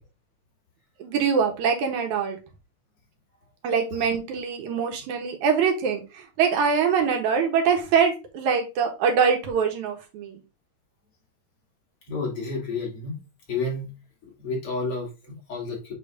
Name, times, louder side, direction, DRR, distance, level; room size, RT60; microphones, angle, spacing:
voice 1, 1.0-2.4 3.6-10.4, right 6 dB, 70° right, 4 dB, 2.5 m, -23 dB
voice 2, 12.1-13.2 13.5-13.9 14.4-15.9, left 3 dB, 45° left, -2 dB, 3.1 m, -30 dB
8.7 x 3.2 x 3.6 m, 0.28 s
omnidirectional pair, 3.8 m